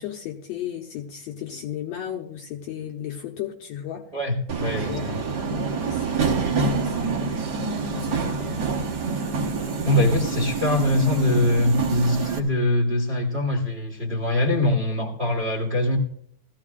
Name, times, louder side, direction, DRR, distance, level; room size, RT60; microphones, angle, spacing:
voice 1, 0.0-4.1 4.9-5.2 5.4-7.4 7.9-8.7 9.1-9.2, left 10 dB, 70° left, 3 dB, 1.7 m, -35 dB
voice 2, 4.1-5.2 9.8-16.0, left 1 dB, 35° right, 0 dB, 1.0 m, -23 dB
Subway metro underground, 4.5-12.4, right 5 dB, 60° right, 1.1 m, -26 dB
18.5 x 14.5 x 2.4 m, 0.66 s
omnidirectional pair, 3.6 m